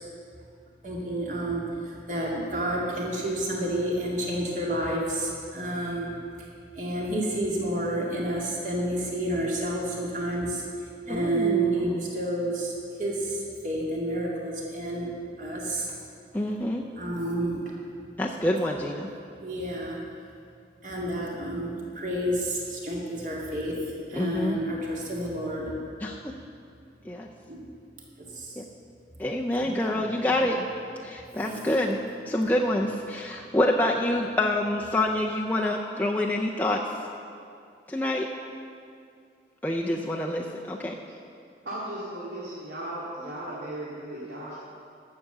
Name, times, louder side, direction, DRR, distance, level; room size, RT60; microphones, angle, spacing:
voice 1, 0.8-1.6 2.1-6.1 6.8-10.6 11.1-12.7 13.0-13.3 13.6-15.1 15.4-15.9 17.0-17.6 19.4-20.0 20.8-23.7 24.1-25.7 27.5-27.6 29.6-30.4 31.4-31.6, right 1 dB, 45° right, -3 dB, 2.2 m, -29 dB
voice 2, 11.1-12.1 16.3-16.8 18.2-19.1 24.1-24.6 26.0-26.3 27.1-27.3 29.2-30.6 31.0-32.0 32.3-36.8 37.9-38.3 39.6-41.0, left 1 dB, 10° left, -1 dB, 0.5 m, -27 dB
voice 3, 41.6-44.5, right 1 dB, 75° right, -8 dB, 2.1 m, -36 dB
11.5 x 7.6 x 6.8 m, 2.4 s
head